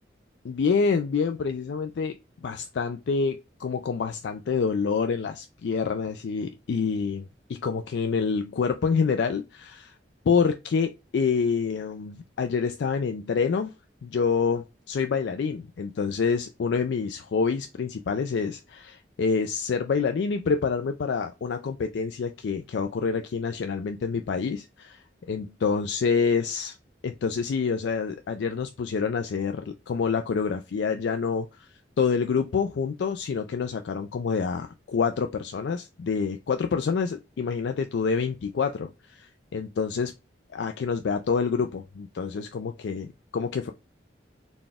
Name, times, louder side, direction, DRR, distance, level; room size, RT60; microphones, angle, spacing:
voice 1, 0.4-2.1 2.4-9.9 10.3-13.7 14.0-25.0 25.3-26.8 27.0-31.7 32.0-40.1 40.5-43.7, left 5 dB, 70° left, 0.3 m, -27 dB
4.1 x 2.2 x 3.4 m
head